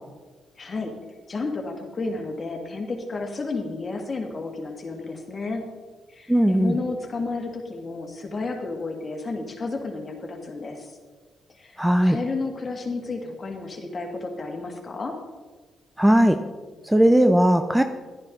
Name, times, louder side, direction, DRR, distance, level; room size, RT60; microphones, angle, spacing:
voice 1, 0.6-0.9 1.3-5.6 6.1-11.0 11.6-15.1, left 3 dB, 40° left, 2 dB, 2.4 m, -32 dB
voice 2, 6.3-6.7 11.8-12.2 16.0-16.4 16.8-17.8, right 1 dB, 5° right, 8 dB, 0.6 m, -18 dB
12.0 x 10.5 x 4.0 m, 1.4 s
supercardioid pair, 55°, 0 cm